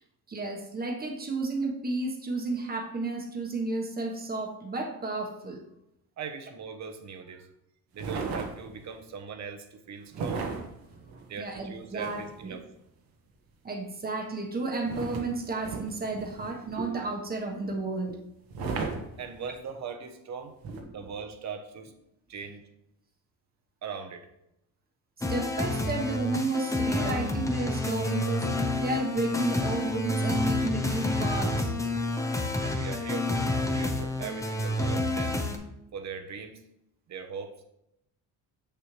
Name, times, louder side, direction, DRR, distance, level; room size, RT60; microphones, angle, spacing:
voice 1, 0.3-5.6 11.4-12.6 13.6-18.2 20.7-21.0 25.3-31.7 32.9-33.0, right 3 dB, 25° right, 2 dB, 1.2 m, -32 dB
voice 2, 6.2-7.5 7.9-10.4 11.3-12.6 19.2-20.6 20.9-21.9 22.3-22.6 23.8-24.3 32.6-33.3 33.7-35.4 35.9-36.6 37.1-37.5, right 6 dB, 45° right, 6 dB, 1.0 m, -40 dB
sound 1, 8.0-8.9 10.1-12.5 14.8-16.8 18.5-19.7 20.6-20.8, right 4 dB, 70° right, 1.4 m, -36 dB
sound 2, 25.2-35.6, left 2 dB, 10° left, 0.7 m, -29 dB
7.5 x 6.8 x 3.2 m, 0.82 s
cardioid pair, 135°, 38 cm